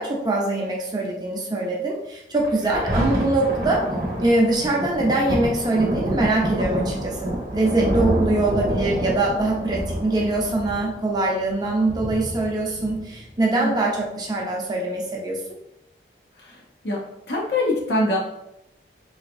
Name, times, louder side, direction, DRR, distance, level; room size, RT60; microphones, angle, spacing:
voice 1, 0.0-3.8 4.2-15.6, right 2 dB, 25° right, -2 dB, 0.6 m, -23 dB
Thunder, 2.4-13.4 14.0-14.1, right 1 dB, 50° right, 0.9 m, -27 dB
voice 2, 17.3-18.2, left 1 dB, 70° left, -1 dB, 0.9 m, -23 dB
3.9 x 2.7 x 2.5 m, 0.84 s
head